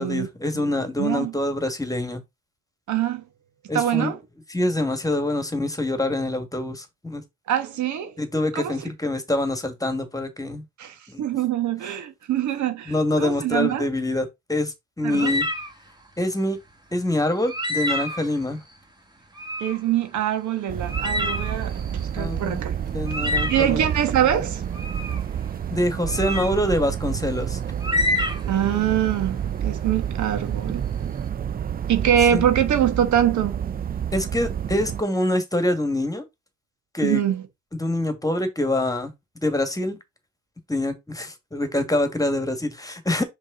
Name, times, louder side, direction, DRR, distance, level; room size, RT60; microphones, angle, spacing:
voice 1, 0.0-2.2 3.7-4.1 4.5-7.2 8.2-10.6 11.1-11.2 12.9-15.5 16.2-16.6 16.9-18.6 22.2-22.6 22.9-23.8 25.7-27.6 32.3-32.4 34.1-36.2 36.9-37.2 37.7-39.1 39.4-40.0 40.7-43.2, left 1 dB, 10° left, 1.7 m, -25 dB
voice 2, 0.5-1.3 2.9-3.2 3.7-4.2 7.5-8.2 8.5-8.7 10.8-13.9 15.0-15.4 19.6-22.7 23.2-24.6 28.5-30.9 31.9-33.6 37.0-37.4, right 10 dB, 70° right, 1.2 m, -24 dB
sound 1, 15.1-15.7 17.4-18.4 19.3-19.8 20.2-20.3 20.9-22.3 23.1-23.7 24.7-25.2 26.1-26.5 27.8-28.7, left 1 dB, 15° right, 1.9 m, -27 dB
sound 2, 20.7-35.0, right 9 dB, 30° right, 0.4 m, -29 dB
5.4 x 4.5 x 3.9 m
cardioid pair, 90°, 30 cm